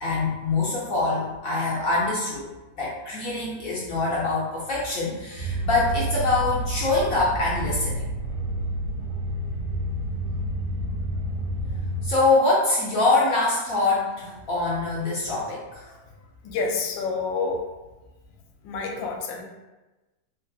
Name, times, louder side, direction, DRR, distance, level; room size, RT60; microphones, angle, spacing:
voice 1, 0.0-2.5 2.8-8.0 12.0-15.9, left 3 dB, 65° left, -7 dB, 0.9 m, -24 dB
sound 1, 5.4-12.1, right 1 dB, 75° right, 1.1 m, -29 dB
voice 2, 16.4-17.7 18.6-19.4, left 4 dB, 80° left, 2 dB, 1.3 m, -28 dB
3.2 x 3.0 x 2.6 m, 1.1 s
omnidirectional pair, 2.0 m